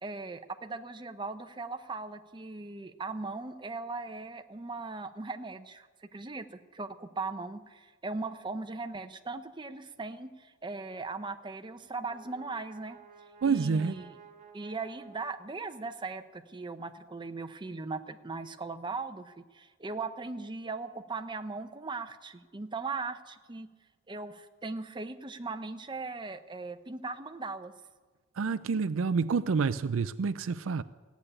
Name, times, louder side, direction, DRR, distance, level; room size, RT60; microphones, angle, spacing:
voice 1, 0.0-5.9 6.1-13.0 13.5-14.0 14.5-23.7 24.1-27.7, right 3 dB, 25° right, 0.7 m, -39 dB
Brass instrument, 11.6-16.1, right 6 dB, 40° right, 1.4 m, -55 dB
voice 2, 13.4-14.0 28.4-30.8, right 5 dB, 70° right, 0.4 m, -28 dB
15.5 x 8.3 x 10.0 m
head